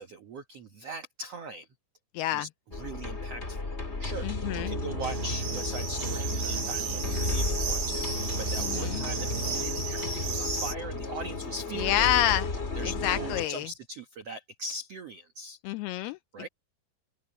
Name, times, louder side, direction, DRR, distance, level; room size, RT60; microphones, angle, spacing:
voice 1, 0.0-1.7 2.3-4.3 4.5-12.2 12.7-15.6 16.3-16.5, right 2 dB, 85° right, 1.4 m, -40 dB
voice 2, 2.1-2.5 4.2-4.7 8.6-9.1 11.8-12.5 12.8-13.7 15.6-16.2, left 13 dB, 85° left, 2.3 m, -28 dB
sound 1, 2.7-13.5, left 3 dB, 25° left, 1.7 m, -34 dB
sound 2, 4.4-9.7, right 5 dB, 55° right, 5.5 m, -38 dB
sound 3, 5.0-10.7, right 5 dB, 30° right, 5.4 m, -34 dB
open air
omnidirectional pair, 5.1 m